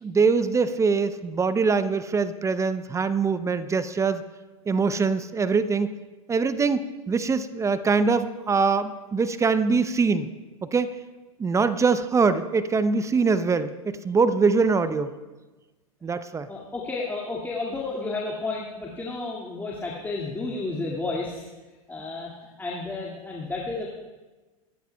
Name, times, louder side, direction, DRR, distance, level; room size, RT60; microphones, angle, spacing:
voice 1, 0.0-4.2 4.7-5.9 6.3-10.3 10.6-10.9 11.4-15.1 16.0-16.5, right 4 dB, 15° right, 13 dB, 0.6 m, -23 dB
voice 2, 16.5-21.5 21.9-22.3 22.6-23.9, left 3 dB, 10° left, -3 dB, 2.1 m, -31 dB
26.0 x 14.0 x 2.3 m, 1.2 s
hypercardioid pair, 95°, 18 cm